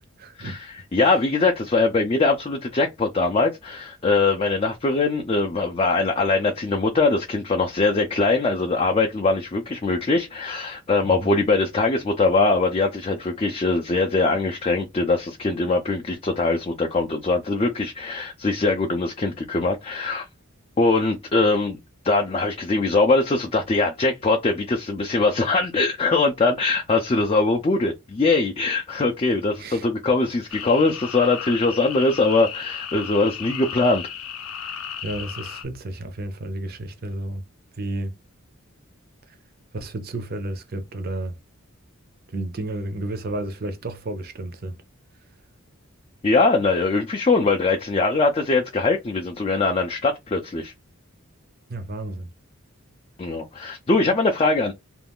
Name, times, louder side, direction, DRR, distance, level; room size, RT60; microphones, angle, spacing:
voice 1, 0.2-0.6 11.0-11.3 29.6-29.9 35.0-37.4 37.7-38.2 39.3-39.4 39.7-41.4 42.3-44.8 51.7-52.3, right 1 dB, 45° right, 0.5 m, -32 dB
voice 2, 0.9-20.3 20.8-21.8 22.0-34.1 46.2-50.7 53.2-54.7, left 3 dB, 25° left, 0.4 m, -22 dB
sound 1, 30.5-35.6, left 8 dB, 75° left, 0.6 m, -35 dB
2.4 x 2.3 x 3.4 m
head